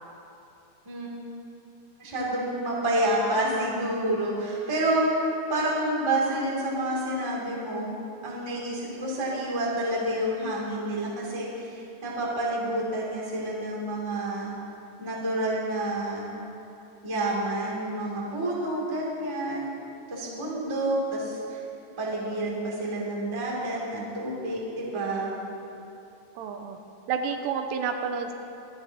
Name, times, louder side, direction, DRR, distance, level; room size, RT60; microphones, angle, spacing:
voice 1, 2.0-7.9 8.2-14.5 15.0-16.3 17.0-19.7 20.1-21.6 22.0-25.3, right 1 dB, 10° right, -5 dB, 1.2 m, -29 dB
voice 2, 26.4-26.8 27.1-28.3, right 6 dB, 85° right, 6 dB, 3.2 m, -29 dB
24.5 x 12.0 x 2.9 m, 3.0 s
omnidirectional pair, 5.6 m